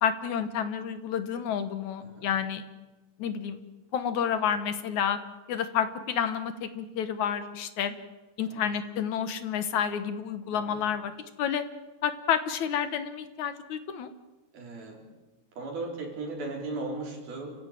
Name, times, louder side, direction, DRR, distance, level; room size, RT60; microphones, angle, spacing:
voice 1, 0.0-2.6 3.2-3.6 3.9-5.2 5.5-7.9 8.4-11.1 11.4-11.6 12.0-14.1, left 8 dB, 60° left, 11 dB, 2.4 m, -29 dB
voice 2, 14.5-15.1 15.6-17.6, right 2 dB, 85° right, 0 dB, 6.4 m, -37 dB
29.0 x 15.5 x 9.2 m, 1.1 s
omnidirectional pair, 4.2 m